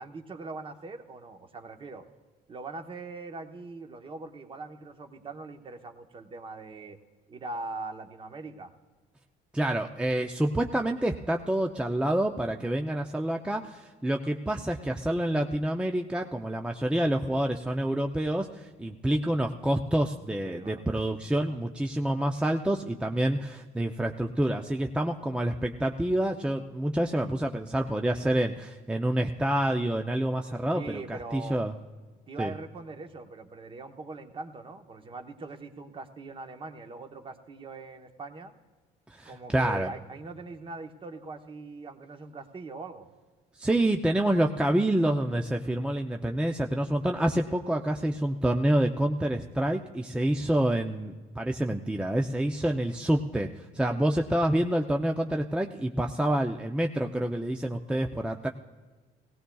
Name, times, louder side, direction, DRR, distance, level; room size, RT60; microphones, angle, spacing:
voice 1, 0.0-2.0 2.5-7.0 7.3-8.7 20.4-20.8 30.7-31.6 32.3-38.5 39.2-43.1, right 3 dB, 30° right, 5 dB, 1.0 m, -41 dB
voice 2, 9.5-31.7 32.4-32.5 39.1-39.9 43.6-58.5, right 1 dB, 5° right, 3 dB, 0.5 m, -27 dB
18.5 x 17.0 x 2.3 m, 1.4 s
cardioid pair, 110°, 17 cm